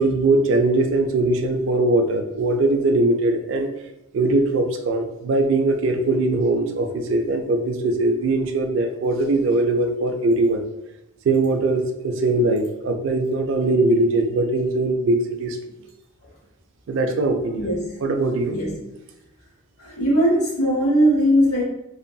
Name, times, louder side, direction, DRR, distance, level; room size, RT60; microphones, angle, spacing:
voice 1, 0.0-3.7 4.1-10.6 11.2-15.6 16.9-17.7 18.0-18.6, right 2 dB, 60° right, 5 dB, 0.3 m, -21 dB
voice 2, 18.5-18.8 19.8-21.6, equal, 85° left, -4 dB, 0.7 m, -19 dB
2.9 x 2.6 x 2.2 m, 0.86 s
head